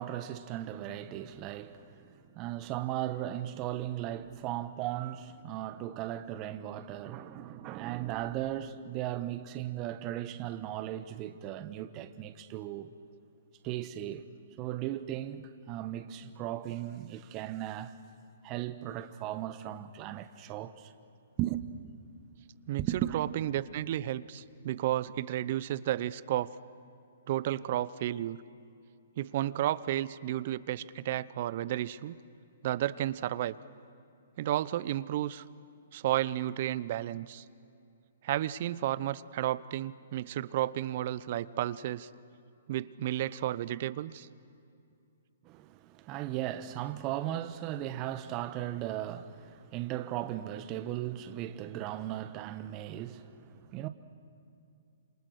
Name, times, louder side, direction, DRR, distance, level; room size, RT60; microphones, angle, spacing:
voice 1, 0.0-12.9 13.6-14.3 14.6-17.9 18.4-20.9 21.4-21.6 22.8-23.2 45.4-53.9, right 13 dB, 30° right, 1.1 m, -37 dB
voice 2, 23.1-26.5 27.3-28.4 29.2-32.2 32.6-33.6 34.4-35.4 35.9-37.4 38.2-42.1 42.7-44.3, right 13 dB, 50° right, 0.7 m, -32 dB
27.5 x 27.0 x 6.5 m
hypercardioid pair, 135°, 0 cm